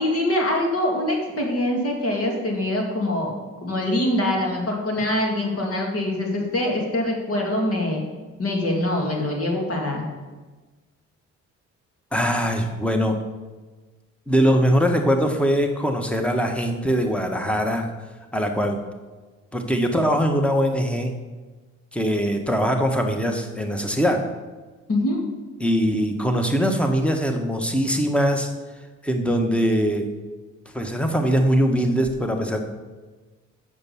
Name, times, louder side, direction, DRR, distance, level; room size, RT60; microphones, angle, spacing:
voice 1, 0.0-3.3 3.6-8.0 8.4-10.0 24.9-25.2, left 1 dB, 50° left, 0 dB, 2.3 m, -24 dB
voice 2, 12.1-13.2 14.3-17.9 18.3-18.8 19.5-21.2 21.9-24.2 25.6-28.5 29.0-30.1 30.7-32.6, equal, 5° left, 4 dB, 1.2 m, -22 dB
7.5 x 6.2 x 7.0 m, 1.3 s
cardioid pair, 90°, 30 cm